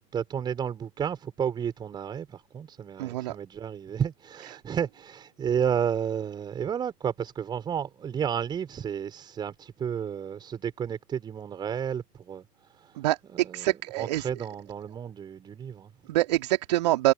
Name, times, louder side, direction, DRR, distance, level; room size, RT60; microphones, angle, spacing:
voice 1, 0.1-12.5 12.8-13.0 13.2-15.9, right 8 dB, 10° right, 4.6 m, -32 dB
voice 2, 3.0-3.4 13.0-14.3 16.1-17.1, right 16 dB, 25° right, 2.4 m, -25 dB
figure-of-eight pair, 135°, 49 cm